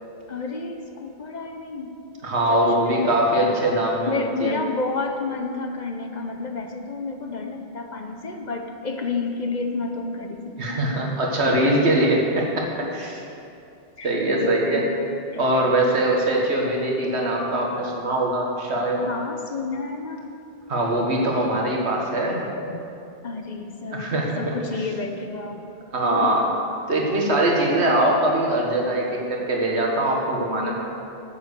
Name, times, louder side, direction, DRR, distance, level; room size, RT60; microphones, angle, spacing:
voice 1, 0.3-1.9 2.5-3.1 4.1-10.8 11.4-11.6 12.8-12.9 14.0-14.1 14.4-14.9 15.3-15.6 19.1-20.3 22.7-22.8 23.2-25.7 26.2-26.4 27.7-27.9, left 4 dB, 45° left, 4 dB, 0.9 m, -30 dB
voice 2, 2.2-4.6 10.6-13.2 14.0-14.8 15.4-19.0 20.7-22.5 23.9-24.6 25.9-26.5 26.9-30.8, right 1 dB, 75° right, -1 dB, 1.8 m, -22 dB
10.0 x 8.0 x 6.6 m, 2.7 s
omnidirectional pair, 1.1 m